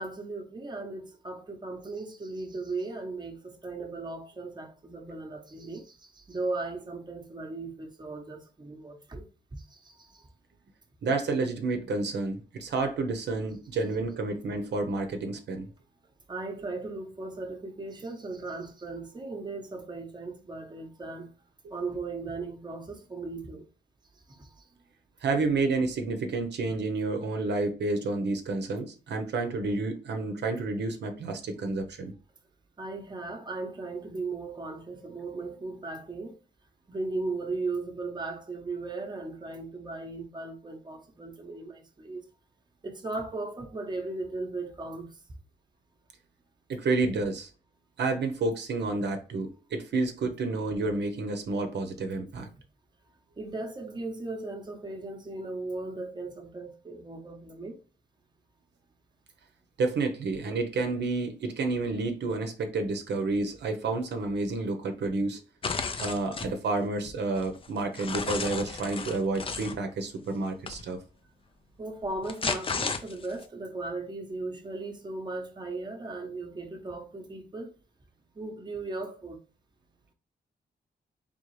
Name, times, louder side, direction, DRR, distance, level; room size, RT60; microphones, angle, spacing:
voice 1, 0.0-9.3 9.5-10.3 16.3-21.3 21.7-23.7 24.3-24.7 32.8-36.4 36.9-42.3 42.8-45.1 53.4-57.8 71.8-77.7 78.3-79.4, right 3 dB, 25° right, 0.9 m, -37 dB
voice 2, 11.0-15.7 25.2-32.1 46.7-47.5 48.0-52.5 59.8-65.4 66.0-71.0, right 3 dB, 75° right, 0.8 m, -30 dB
sound 1, 65.6-66.5 67.1-69.8 70.7-70.8 72.0-73.4, left 4 dB, 30° left, 0.5 m, -33 dB
3.8 x 3.6 x 3.2 m
wide cardioid pair, 115°, 18 cm